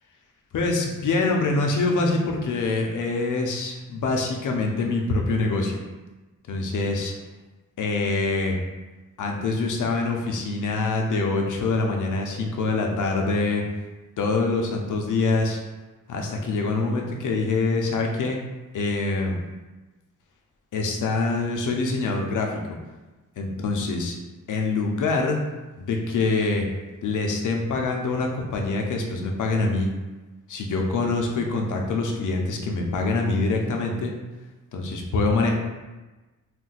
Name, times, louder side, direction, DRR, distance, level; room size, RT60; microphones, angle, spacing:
voice 1, 0.5-5.8 6.5-7.1 7.8-8.6 9.2-13.6 14.2-15.6 16.1-18.4 18.7-19.4 20.7-22.8 23.4-24.2 24.5-25.4 25.8-26.6 27.0-29.9 30.5-34.1 34.7-35.5, left 3 dB, 70° left, 2 dB, 0.5 m, -25 dB
2.5 x 2.1 x 3.9 m, 1.2 s
wide cardioid pair, 150°, 32 cm